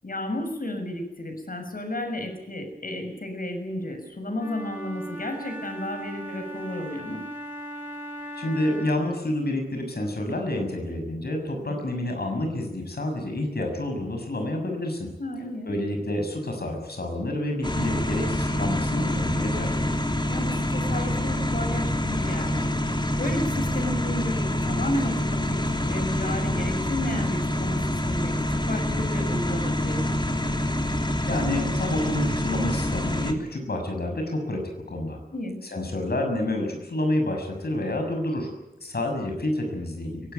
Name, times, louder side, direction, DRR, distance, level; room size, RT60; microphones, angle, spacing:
voice 1, 0.0-7.2 11.6-11.8 15.2-15.7 20.3-22.7 23.2-30.2 35.3-35.6, left 1 dB, 65° left, 6 dB, 6.6 m, -33 dB
Wind instrument woodwind instrument, 4.3-9.2, right 1 dB, 15° right, 7.8 m, -38 dB
voice 2, 8.3-15.1 15.7-19.9 31.3-35.2 35.7-38.5 38.8-40.3, left 1 dB, 90° left, 4 dB, 6.9 m, -28 dB
sound 1, 17.6-33.3, left 1 dB, 30° left, 3.2 m, -26 dB
23.5 x 18.5 x 9.5 m, 0.93 s
wide cardioid pair, 60°, 16 cm